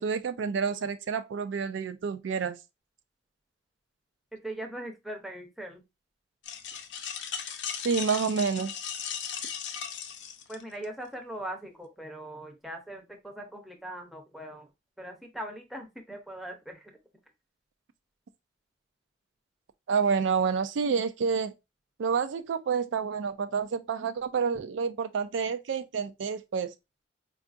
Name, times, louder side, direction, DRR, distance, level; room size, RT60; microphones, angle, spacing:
voice 1, 0.0-2.6 7.8-8.7 19.9-21.5 22.0-26.7, right 6 dB, 75° right, 0.4 m, -28 dB
voice 2, 4.4-5.8 10.5-14.7 15.0-16.9, right 1 dB, ahead, 0.6 m, -40 dB
sound 1, 6.4-10.8, left 7 dB, 65° left, 0.5 m, -37 dB
4.5 x 2.4 x 2.5 m
head